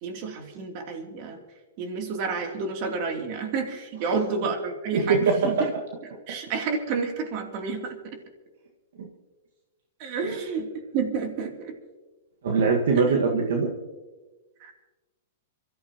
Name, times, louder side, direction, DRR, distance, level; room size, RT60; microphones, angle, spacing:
voice 1, 0.0-1.4 1.8-5.5 6.3-8.0 10.0-11.8 14.6-14.9, right 5 dB, 50° right, 3 dB, 3.0 m, -30 dB
voice 2, 4.9-5.7 9.0-9.1 10.3-10.4 12.4-13.7, right 4 dB, 75° right, 1 dB, 1.7 m, -22 dB
27.0 x 13.5 x 3.0 m, 1.2 s
hypercardioid pair, 125°, 0 cm